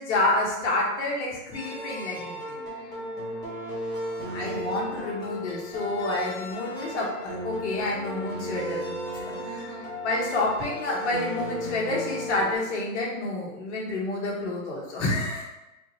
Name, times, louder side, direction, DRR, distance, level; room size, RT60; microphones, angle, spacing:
voice 1, 0.0-2.6 4.3-9.2 10.0-15.4, left 2 dB, 50° left, -3 dB, 1.4 m, -29 dB
sound 1, 1.5-12.6, equal, 10° left, 1.2 m, -35 dB
voice 2, 2.6-3.3 4.2-4.8 6.6-7.0 9.3-9.9, right 1 dB, 30° right, -4 dB, 1.1 m, -46 dB
4.2 x 2.9 x 3.1 m, 0.98 s
hypercardioid pair, 150°, 43 cm